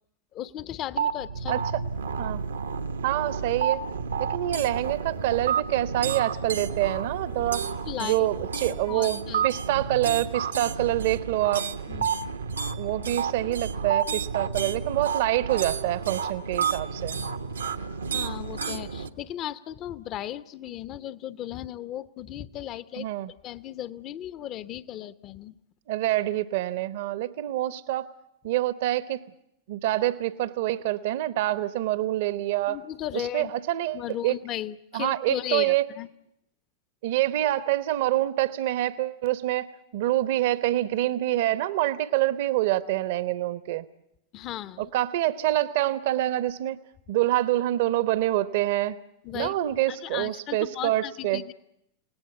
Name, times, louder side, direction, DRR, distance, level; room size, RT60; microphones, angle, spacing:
voice 1, 0.3-1.6 7.8-8.3 8.9-9.5 11.9-12.1 18.1-23.1 23.4-25.6 32.7-33.5 33.9-36.1 44.3-44.9 49.2-49.5 49.9-51.5, left 12 dB, 35° left, 15 dB, 0.9 m, -36 dB
sound 1, 0.9-19.1, right 6 dB, 75° right, 1.1 m, -31 dB
voice 2, 1.5-1.8 2.2-2.4 3.0-3.8 4.2-7.7 8.0-11.7 12.7-17.2 23.0-23.3 25.9-28.1 28.4-29.2 29.7-32.8 33.1-34.3 34.9-35.9 37.0-43.9 44.8-46.8 47.1-49.0 49.3-51.4, right 15 dB, 50° right, 15 dB, 1.0 m, -26 dB
29.5 x 18.5 x 8.3 m, 0.82 s
figure-of-eight pair, 90°, 0 cm